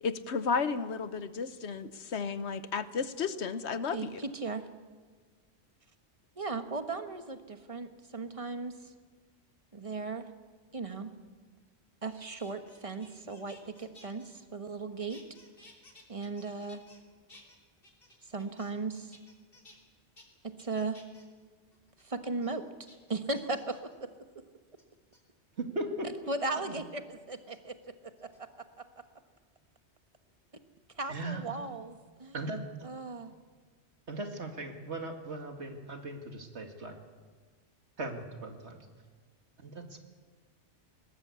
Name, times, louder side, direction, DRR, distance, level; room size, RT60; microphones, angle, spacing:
voice 1, 0.0-4.2, left 5 dB, 75° left, 13 dB, 1.2 m, -33 dB
voice 2, 3.9-4.7 6.4-8.9 9.7-10.3 10.7-11.1 12.0-15.2 16.1-16.8 18.2-19.2 20.4-21.0 22.0-22.6 23.1-24.1 26.3-28.3 31.0-32.3 32.8-33.3, right 3 dB, 30° right, 8 dB, 1.4 m, -37 dB
sound 1, 12.1-14.8 15.1-17.0 17.3-18.8 19.1-19.8 20.2-20.3 20.6-21.3 21.7-22.0 22.4-22.5 22.9-23.9 24.8-25.2 26.4-26.8 27.4-27.6 28.2-28.7 30.2-31.3 31.6-32.0, left 1 dB, 55° left, 3.5 m, -58 dB
voice 3, 25.6-25.9 26.2-26.3 26.7-26.8 31.1-31.4 32.3-32.6 34.1-37.0 38.0-38.8 39.6-40.0, right 2 dB, 75° right, 4 dB, 2.5 m, -38 dB
21.0 x 19.5 x 8.4 m, 1.5 s
omnidirectional pair, 1.2 m